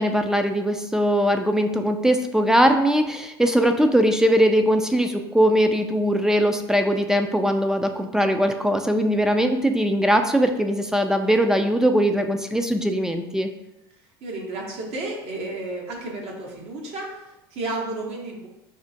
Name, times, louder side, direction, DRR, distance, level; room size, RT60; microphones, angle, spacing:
voice 1, 0.0-13.5, equal, 5° right, 6 dB, 0.4 m, -20 dB
voice 2, 13.9-18.5, right 2 dB, 55° right, -1 dB, 1.0 m, -32 dB
5.4 x 2.4 x 2.7 m, 0.93 s
hypercardioid pair, 75°, 13 cm